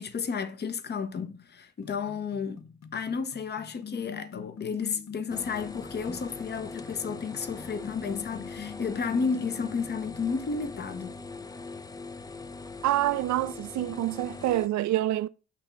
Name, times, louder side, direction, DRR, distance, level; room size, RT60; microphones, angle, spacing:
voice 1, 0.0-2.6 2.9-11.2, left 5 dB, 35° left, 0.8 m, -32 dB
sound 1, 1.8-10.3, left 8 dB, 65° left, 0.9 m, -44 dB
sound 2, 5.3-14.7, left 3 dB, 15° left, 0.4 m, -41 dB
voice 2, 12.8-15.3, right 14 dB, 70° right, 0.5 m, -27 dB
8.4 x 2.9 x 5.6 m
cardioid pair, 90°, 30 cm